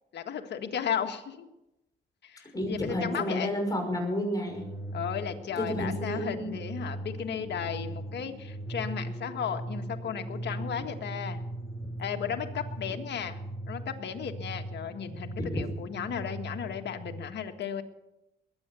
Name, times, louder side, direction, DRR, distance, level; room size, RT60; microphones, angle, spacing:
voice 1, 0.1-1.5 2.2-3.5 4.9-11.4 12.0-13.4 13.7-17.8, left 8 dB, 60° left, 5 dB, 1.7 m, -35 dB
voice 2, 2.5-4.7 5.6-6.6, equal, 20° left, 1 dB, 5.9 m, -31 dB
sound 1, 4.5-17.2, right 1 dB, ahead, 6.0 m, -39 dB
21.0 x 9.2 x 6.9 m, 0.92 s
cardioid pair, 90°, 20 cm